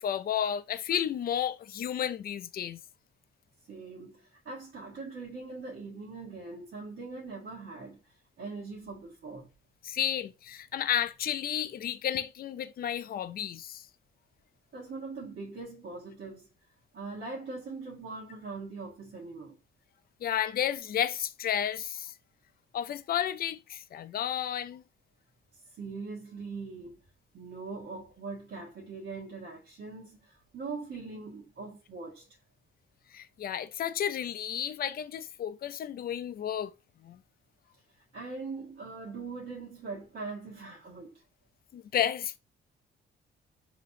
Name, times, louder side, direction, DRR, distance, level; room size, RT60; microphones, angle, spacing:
voice 1, 0.0-2.8 9.8-13.9 20.2-22.1 22.7-24.8 33.1-36.7 37.0-37.2 41.7-42.4, left 10 dB, 50° left, 0.5 m, -32 dB
voice 2, 3.7-9.5 14.7-16.5 16.9-19.6 25.5-27.0 27.3-32.4 38.1-41.2, right 4 dB, 60° right, 1.3 m, -41 dB
5.0 x 2.9 x 2.7 m
cardioid pair, 90°, 20 cm